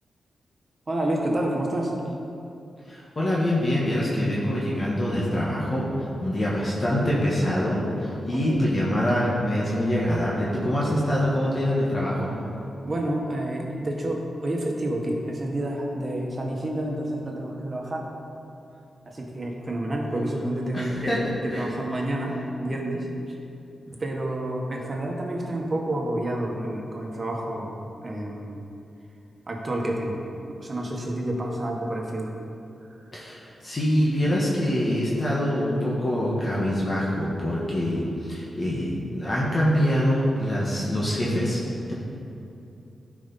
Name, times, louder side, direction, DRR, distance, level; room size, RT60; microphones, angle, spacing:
voice 1, 0.9-1.9 8.3-8.6 12.8-18.1 19.0-21.1 21.4-23.4 23.9-28.6 29.5-32.3, right 1 dB, 35° right, 0 dB, 1.4 m, -29 dB
voice 2, 2.8-5.9 6.2-12.3 20.1-20.2 20.7-21.6 33.1-38.9 39.1-41.6, equal, 40° left, -6 dB, 1.6 m, -25 dB
12.0 x 5.2 x 4.1 m, 2.7 s
cardioid pair, 70°, 0 cm